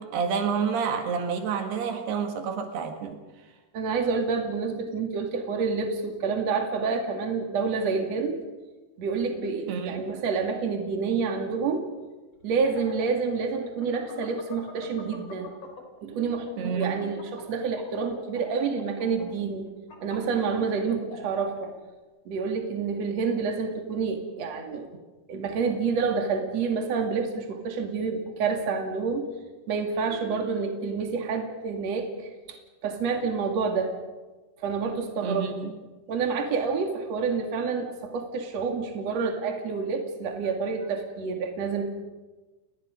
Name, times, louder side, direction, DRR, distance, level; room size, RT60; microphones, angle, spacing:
voice 1, 0.0-3.2 9.7-10.1 16.6-17.0 35.2-35.8, right 6 dB, 85° right, 5 dB, 3.8 m, -29 dB
voice 2, 3.7-8.4 9.0-11.8 12.4-15.5 16.0-19.7 20.0-21.7 22.3-24.9 25.3-29.3 29.7-32.1 32.5-32.6 32.8-33.9 34.6-35.5 36.1-41.8, right 5 dB, 45° right, 3 dB, 3.1 m, -28 dB
sound 1, 12.4-16.0 16.3-21.7, left 4 dB, 45° left, 4.6 m, -45 dB
29.0 x 20.5 x 5.3 m, 1.2 s
omnidirectional pair, 4.6 m